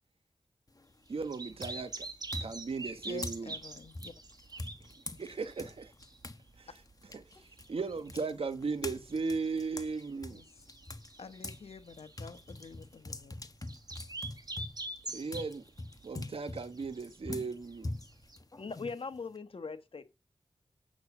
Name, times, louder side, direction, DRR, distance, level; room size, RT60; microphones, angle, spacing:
sound 1, 0.7-1.1 1.6-6.4 6.8-11.6 12.0-19.4, left 2 dB, 35° left, 1.2 m, -44 dB
sound 2, 1.1-18.4, right 2 dB, 40° right, 1.7 m, -46 dB
voice 1, 1.1-2.1 2.4-3.5 5.2-5.9 6.6-6.7 7.1-7.2 7.7-10.4 15.1-15.6 16.0-17.9, right 4 dB, 70° right, 1.1 m, -36 dB
voice 2, 3.1-4.1 6.7-6.8 10.3-10.4 11.2-13.3, left 4 dB, 85° left, 1.2 m, -48 dB
voice 3, 18.6-20.0, left 4 dB, 65° left, 1.4 m, -40 dB
8.7 x 6.3 x 6.1 m
cardioid pair, 45°, 10 cm